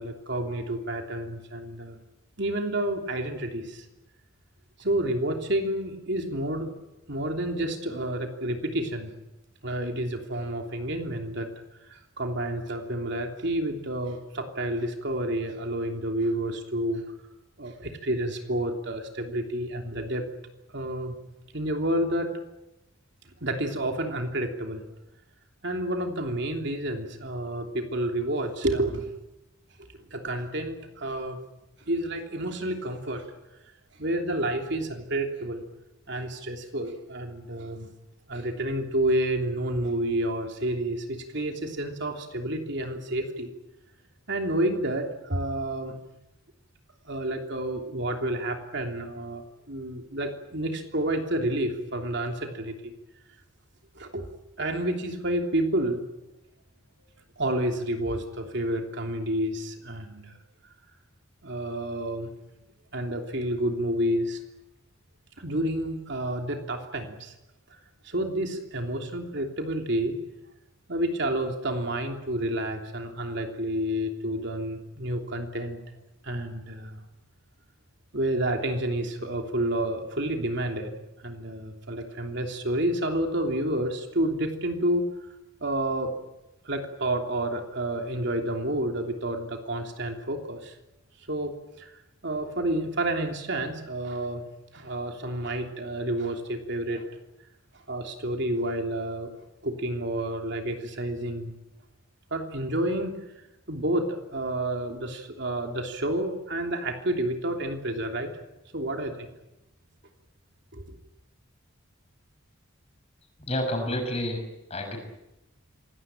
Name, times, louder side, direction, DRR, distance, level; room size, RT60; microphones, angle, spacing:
voice 1, 0.0-2.0 2.4-3.8 4.8-6.7 7.1-9.1 9.6-11.5 11.9-17.0 17.6-20.2 20.7-21.2 21.5-22.3 23.4-24.9 25.6-29.1 30.1-31.4 31.9-33.3 34.0-35.6 36.1-37.9 38.3-43.5 44.3-46.0 47.1-52.7 53.9-54.2 54.6-56.0 57.4-60.4 61.4-62.3 62.9-64.4 65.4-67.3 68.0-70.2 70.9-75.8 76.2-77.0 78.1-80.9 81.2-85.0 85.6-86.1 86.6-90.7 91.3-91.9 92.2-94.4 94.7-97.0 97.9-99.3 99.6-101.5 102.3-103.2 103.7-108.3 108.7-109.3 110.7-111.0, right 1 dB, 55° right, 4 dB, 3.2 m, -29 dB
voice 2, 113.4-115.0, left 1 dB, 30° left, 4 dB, 6.4 m, -30 dB
26.5 x 18.5 x 9.1 m, 0.92 s
head